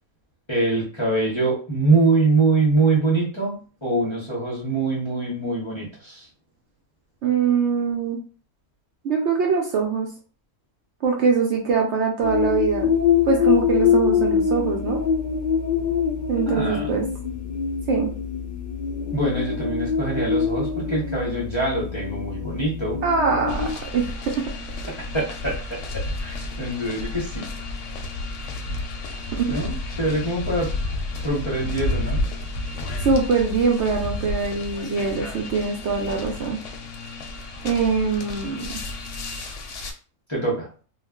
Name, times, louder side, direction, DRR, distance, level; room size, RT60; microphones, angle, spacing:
voice 1, 0.5-6.3 16.4-17.0 19.1-23.0 24.9-27.5 29.5-30.7 31.2-32.2 40.3-40.7, right 3 dB, 25° left, -6 dB, 0.6 m, -24 dB
voice 2, 7.2-8.2 9.0-10.1 11.0-12.9 13.3-15.0 16.3-17.1 17.9-18.1 23.0-23.6 23.9-24.1 29.4-29.5 33.0-36.6 37.6-38.8, right 5 dB, 65° right, 1 dB, 0.7 m, -22 dB
sound 1, 12.2-23.7, left 7 dB, 90° left, 0.4 m, -24 dB
sound 2, 23.5-39.9, left 2 dB, 70° left, 0.9 m, -31 dB
2.3 x 2.2 x 3.5 m, 0.39 s
omnidirectional pair, 1.4 m